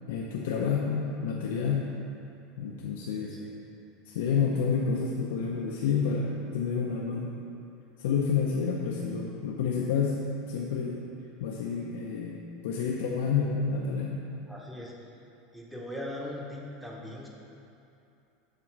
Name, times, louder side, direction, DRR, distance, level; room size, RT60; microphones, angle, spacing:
voice 1, 0.1-1.9 2.6-3.3 4.1-7.4 8.0-11.0 11.4-14.2, left 6 dB, 85° left, -2 dB, 0.6 m, -29 dB
voice 2, 3.2-3.5 14.5-15.1 15.5-17.3, left 1 dB, 5° right, -2 dB, 0.9 m, -40 dB
7.4 x 4.1 x 5.9 m, 2.8 s
supercardioid pair, 155°, 0 cm